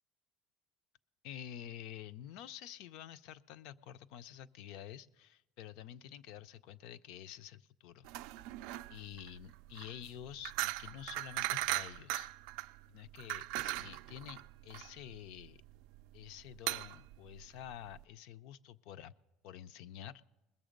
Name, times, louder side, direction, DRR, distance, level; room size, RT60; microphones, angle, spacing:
voice 1, 1.2-8.1 8.9-12.3 12.9-15.6 16.1-19.1 19.4-20.2, left 10 dB, 65° left, 14 dB, 0.5 m, -49 dB
sound 1, 8.0-18.0, right 17 dB, 70° right, 0.3 m, -39 dB
20.5 x 7.1 x 5.1 m, 1.0 s
cardioid pair, 160°, 0 cm